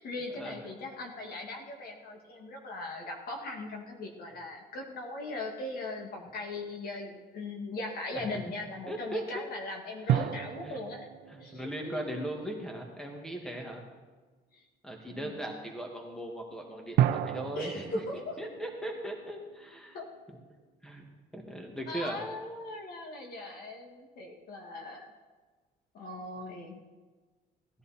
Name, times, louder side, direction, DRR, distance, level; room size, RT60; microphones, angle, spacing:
voice 1, 0.0-11.1 11.4-12.0 15.1-15.3 17.6-18.4 19.9-20.1 21.9-25.1 25.9-26.8, left 2 dB, 65° left, 2 dB, 2.3 m, -39 dB
sound 1, 5.7-6.4 10.1-12.9 17.0-20.2, right 11 dB, 70° right, 0.6 m, -33 dB
voice 2, 8.1-8.5 8.9-9.4 10.1-10.8 11.3-13.8 14.8-17.9 18.4-20.0 20.3-20.4 20.8-21.0 21.3-22.2, right 1 dB, 5° left, 1 dB, 2.2 m, -39 dB
16.5 x 10.5 x 4.4 m, 1.3 s
cardioid pair, 110°, 17 cm